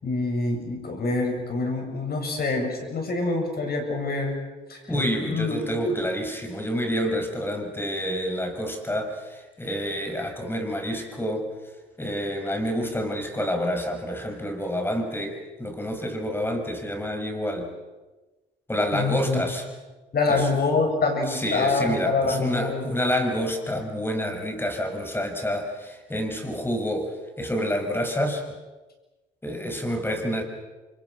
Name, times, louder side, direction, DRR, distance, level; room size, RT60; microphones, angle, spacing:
voice 1, 0.0-4.3 4.7-5.0 5.3-6.0 18.9-19.4 20.1-23.2, left 3 dB, 50° left, 3 dB, 7.7 m, -26 dB
voice 2, 4.9-11.5 12.0-17.7 18.7-19.6 20.3-20.5 21.3-28.4 29.4-30.4, equal, 10° left, 4 dB, 5.7 m, -28 dB
30.0 x 24.5 x 6.2 m, 1.2 s
cardioid pair, 90°, 20 cm